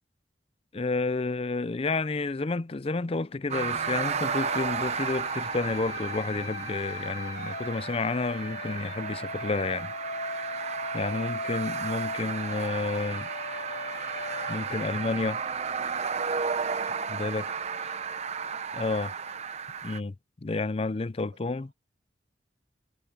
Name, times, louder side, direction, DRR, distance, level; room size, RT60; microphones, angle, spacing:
voice 1, 0.7-9.9 10.4-10.6 10.9-13.3 14.5-15.4 17.1-17.4 18.7-19.1 19.8-20.1 20.4-21.7, left 3 dB, 30° left, 0.5 m, -30 dB
sound 1, 3.5-20.0, right 6 dB, 35° right, 0.8 m, -33 dB
sound 2, 3.7-15.5, left 2 dB, 60° left, 2.9 m, -39 dB
voice 2, 11.1-11.6 19.0-19.5 21.3-21.7, right 2 dB, 75° right, 7.1 m, -62 dB
head